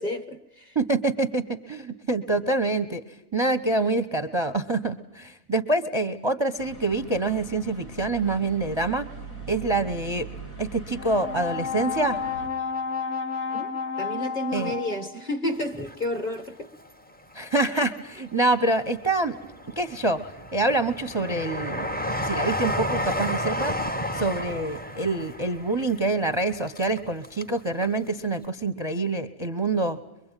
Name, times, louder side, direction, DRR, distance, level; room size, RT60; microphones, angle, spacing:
voice 1, 0.0-0.7 13.5-13.7 14.0-16.7, left 1 dB, 30° left, 1.9 m, -31 dB
voice 2, 0.7-3.0 3.3-9.1 9.5-10.3 10.6-12.2 14.5-14.7 17.3-19.3 19.8-20.2 20.5-21.9 22.2-30.0, right 2 dB, 20° right, 0.9 m, -26 dB
sound 1, 6.6-12.5, right 2 dB, 65° left, 5.3 m, -41 dB
Brass instrument, 10.9-15.3, left 6 dB, 85° left, 3.5 m, -31 dB
Train, 15.6-16.9 17.3-18.3 18.8-27.6 27.8-27.9, equal, 10° left, 0.8 m, -32 dB
24.0 x 24.0 x 9.1 m
omnidirectional pair, 1.5 m